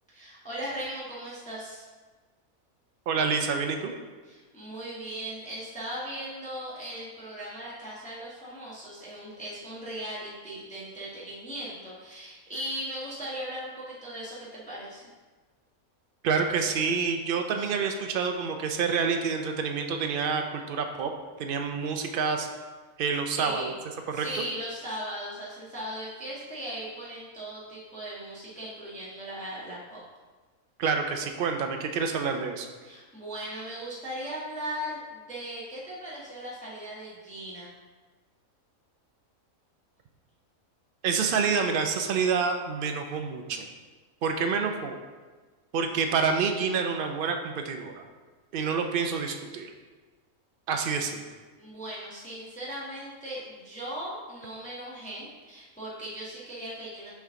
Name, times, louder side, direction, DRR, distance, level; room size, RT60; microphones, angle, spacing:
voice 1, 0.1-1.8 4.2-15.1 23.4-23.8 24.1-30.0 32.8-37.7 51.6-57.1, right 1 dB, 5° left, -8 dB, 1.2 m, -38 dB
voice 2, 3.1-3.9 16.2-21.1 21.4-22.5 23.0-23.6 24.1-24.3 30.8-32.7 41.0-43.7 44.2-45.0 45.7-48.0 48.5-49.7 50.7-51.2, right 5 dB, 70° right, 5 dB, 0.5 m, -28 dB
5.6 x 4.6 x 3.7 m, 1.3 s
omnidirectional pair, 1.5 m